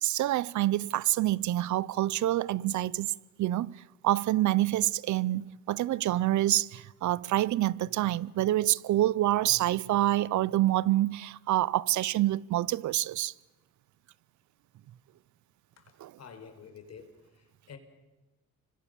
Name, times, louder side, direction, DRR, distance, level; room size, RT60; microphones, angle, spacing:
voice 1, 0.0-3.7 4.0-13.3 16.0-16.1, right 14 dB, 75° right, 0.8 m, -27 dB
voice 2, 16.2-17.1 17.4-17.8, left 6 dB, 55° left, 5.4 m, -48 dB
30.0 x 25.5 x 7.0 m
cardioid pair, 90°, 30 cm